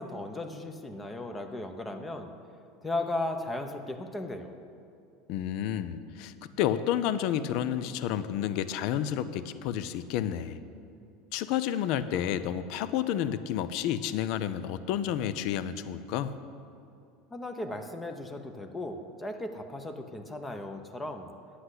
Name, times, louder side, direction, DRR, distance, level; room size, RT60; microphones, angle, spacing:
voice 1, 0.0-2.3 2.8-4.5 17.3-21.3, left 2 dB, 10° left, 6 dB, 0.8 m, -36 dB
voice 2, 5.3-10.6 11.3-16.3, left 10 dB, 60° left, 13 dB, 0.5 m, -30 dB
9.9 x 7.9 x 7.9 m, 2.5 s
supercardioid pair, 145°, 0 cm